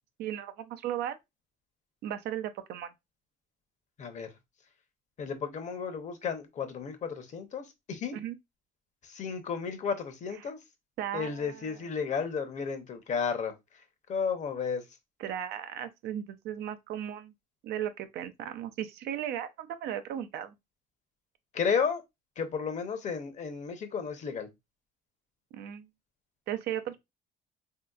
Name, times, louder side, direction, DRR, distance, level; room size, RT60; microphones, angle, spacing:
voice 1, 0.2-1.2 2.0-2.9 8.1-8.3 11.0-11.8 15.2-17.3 17.6-20.5 25.5-25.9 26.5-27.0, right 10 dB, 75° right, 0.5 m, -36 dB
voice 2, 4.0-4.3 5.2-8.2 9.0-10.6 11.1-13.5 14.1-14.8 21.5-22.0 22.4-24.5, left 6 dB, 45° left, 0.7 m, -33 dB
3.2 x 2.8 x 2.3 m
cardioid pair, 110°, 17 cm